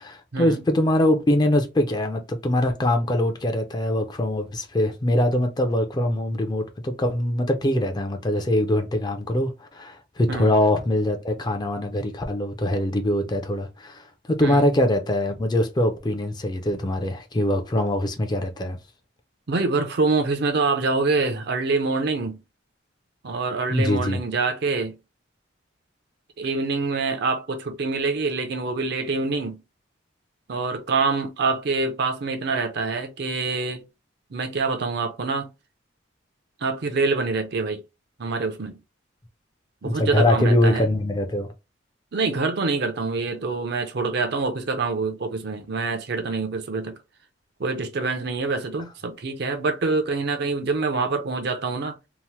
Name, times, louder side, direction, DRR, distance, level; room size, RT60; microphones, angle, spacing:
voice 1, 0.0-18.8 23.7-24.2 39.8-41.5, left 1 dB, 20° left, 0.4 m, -23 dB
voice 2, 19.5-22.4 23.2-25.0 26.4-29.6 30.5-33.8 34.3-35.5 36.6-37.8 38.2-38.8 39.8-40.9 42.1-47.0 47.6-52.0, right 3 dB, 55° right, 0.5 m, -25 dB
2.8 x 2.0 x 3.0 m
head